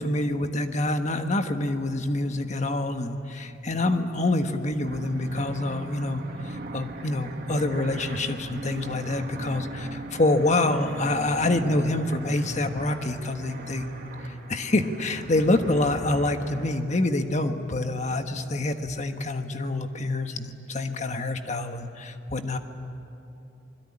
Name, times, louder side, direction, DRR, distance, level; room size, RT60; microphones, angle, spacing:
voice 1, 0.0-13.9 14.2-22.6, left 2 dB, 35° left, 6 dB, 1.4 m, -26 dB
sound 1, 4.8-16.8, right 1 dB, 50° right, 2.3 m, -39 dB
26.0 x 22.0 x 9.9 m, 2.9 s
head